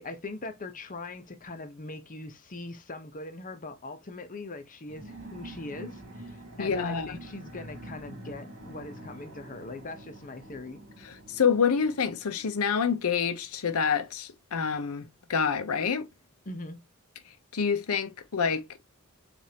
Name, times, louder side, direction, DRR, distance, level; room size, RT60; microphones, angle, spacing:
voice 1, 0.0-10.8 16.5-16.8, left 2 dB, 40° left, 0.8 m, -41 dB
sound 1, 4.9-13.0, right 1 dB, 35° right, 3.1 m, -46 dB
voice 2, 6.6-7.2 11.0-16.1 17.5-18.7, left 6 dB, 75° left, 0.6 m, -27 dB
7.3 x 2.6 x 2.8 m
head